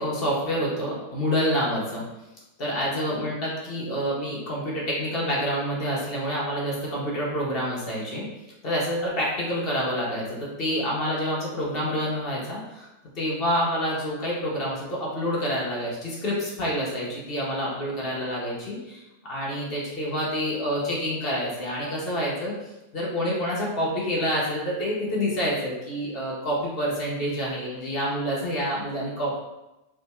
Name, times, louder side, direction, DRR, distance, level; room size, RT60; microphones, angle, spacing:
voice 1, 0.0-2.0 2.6-8.3 8.6-12.9 13.1-19.0 19.3-22.5 22.9-29.4, equal, 40° left, -5 dB, 1.1 m, -27 dB
3.2 x 2.3 x 3.1 m, 0.99 s
figure-of-eight pair, 90°, 0 cm